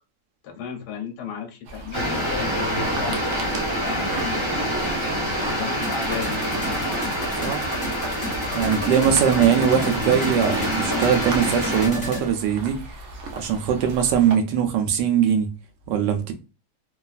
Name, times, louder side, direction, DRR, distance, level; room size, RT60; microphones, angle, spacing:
voice 1, 0.4-4.8 5.4-6.8, left 7 dB, 70° left, 1.1 m, -35 dB
sound 1, 1.7-14.3, right 2 dB, 65° right, 1.0 m, -37 dB
sound 2, 1.9-11.9, equal, 30° right, 0.5 m, -26 dB
sound 3, 5.8-12.3, left 2 dB, 35° left, 1.1 m, -34 dB
voice 2, 8.5-12.8 13.4-15.5 15.9-16.3, right 8 dB, 80° right, 1.2 m, -21 dB
3.0 x 2.3 x 2.4 m
omnidirectional pair, 1.9 m